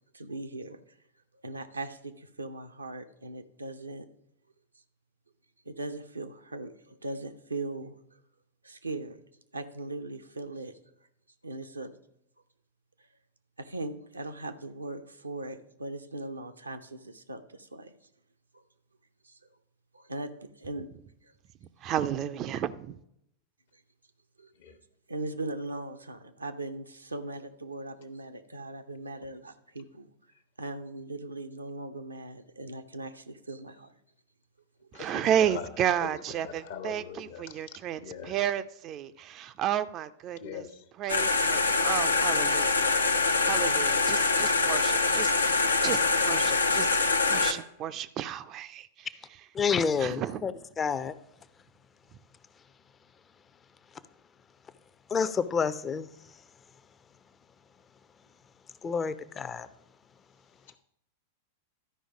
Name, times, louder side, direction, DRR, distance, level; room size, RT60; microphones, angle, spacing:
voice 1, 0.1-0.8 1.4-4.1 5.7-7.9 8.6-9.2 9.5-10.8 11.4-12.0 13.6-17.9 18.5-18.6 19.2-19.4 19.9-20.9 23.7-23.8 24.4-24.5 25.1-30.1 30.6-33.9 35.0-35.1, right 2 dB, 85° right, 0.7 m, -39 dB
voice 2, 21.6-23.0 34.9-40.6 41.0-43.0 43.4-49.1 50.0-50.5, right 10 dB, 35° right, 0.4 m, -32 dB
voice 3, 34.9-35.7 36.0-38.3 40.3-40.9, left 8 dB, 60° left, 1.1 m, -42 dB
sound 1, 41.1-47.5, left 3 dB, 80° left, 0.7 m, -24 dB
voice 4, 49.5-51.2 55.1-56.4 58.8-59.7, left 6 dB, 20° left, 0.5 m, -29 dB
12.5 x 5.1 x 4.9 m
figure-of-eight pair, 95°, 0 cm